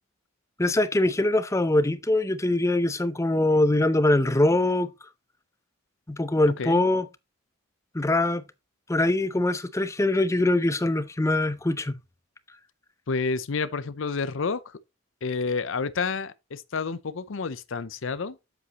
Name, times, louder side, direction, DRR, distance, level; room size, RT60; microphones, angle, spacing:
voice 1, 0.6-4.9 6.1-7.1 7.9-8.4 8.9-12.0, left 1 dB, 15° left, 0.5 m, -23 dB
voice 2, 13.1-14.8 15.2-18.4, left 4 dB, 60° left, 0.5 m, -29 dB
8.4 x 7.9 x 2.9 m
head